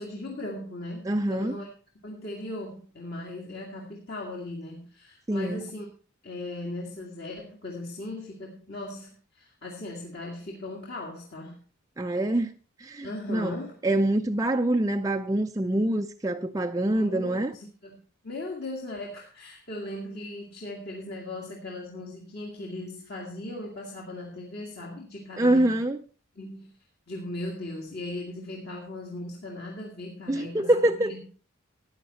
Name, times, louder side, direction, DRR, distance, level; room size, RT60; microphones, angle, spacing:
voice 1, 0.0-1.7 2.0-5.9 6.2-11.6 13.0-13.8 16.9-25.8 26.4-26.7 27.1-31.3, left 1 dB, 50° left, 2.0 m, -38 dB
voice 2, 1.1-1.6 5.3-5.6 12.0-13.5 13.8-17.5 25.4-26.0 30.3-31.2, right 1 dB, 15° right, 0.4 m, -25 dB
14.0 x 9.7 x 4.2 m
head